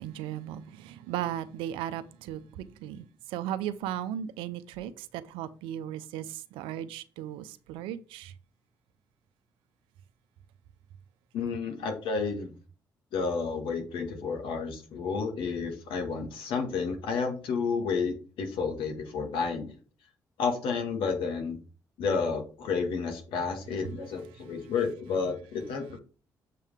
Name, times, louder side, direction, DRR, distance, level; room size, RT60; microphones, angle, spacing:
voice 1, 0.0-8.3, right 11 dB, 85° right, 0.5 m, -36 dB
voice 2, 11.3-12.5 13.1-19.8 20.4-21.6 22.0-26.0, left 5 dB, 80° left, 1.9 m, -31 dB
7.5 x 5.5 x 3.5 m
supercardioid pair, 50°, 9 cm